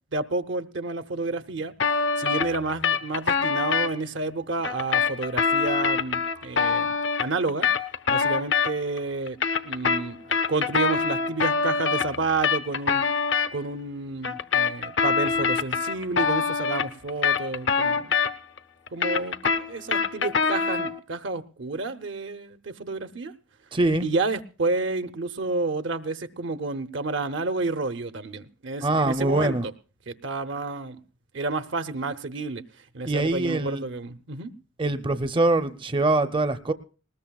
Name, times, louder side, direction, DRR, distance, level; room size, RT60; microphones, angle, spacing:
voice 1, 0.1-1.7 2.2-6.9 7.2-7.7 8.1-9.4 9.6-13.0 13.5-18.1 18.9-23.3 24.0-29.6 30.1-31.0 31.3-32.6 32.9-34.5, right 3 dB, 75° right, 8 dB, 0.8 m, -30 dB
sound 1, 1.8-3.9 4.6-9.0 9.3-13.5 14.2-18.6 18.9-21.0, left 5 dB, 70° left, 0.8 m, -24 dB
voice 2, 23.7-24.1 28.8-29.6 33.0-33.8 34.8-36.7, right 2 dB, 25° right, 10 dB, 0.6 m, -23 dB
20.0 x 19.5 x 2.3 m, 0.37 s
head